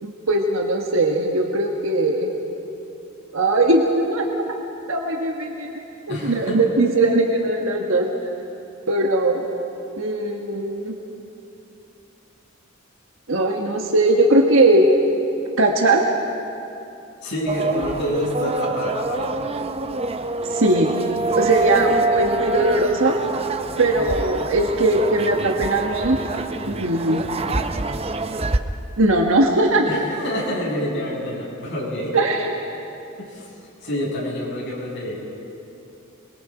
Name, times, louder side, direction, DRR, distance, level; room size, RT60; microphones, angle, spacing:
voice 1, 0.0-2.3 3.3-4.5 4.9-5.7 6.1-8.1 8.9-9.4 10.0-10.9 13.3-14.9 15.6-16.0 20.5-20.9 21.4-23.1 23.8-26.2 26.7-27.2 29.0-29.8 32.1-32.5, right 2 dB, 70° right, 1 dB, 1.5 m, -19 dB
voice 2, 6.1-6.6 17.2-19.4 29.8-32.2 33.2-33.5 33.8-35.1, left 1 dB, 60° left, -5 dB, 7.3 m, -27 dB
sound 1, 17.5-28.6, right 3 dB, 30° right, 0.7 m, -25 dB
26.5 x 22.5 x 5.1 m, 2.8 s
head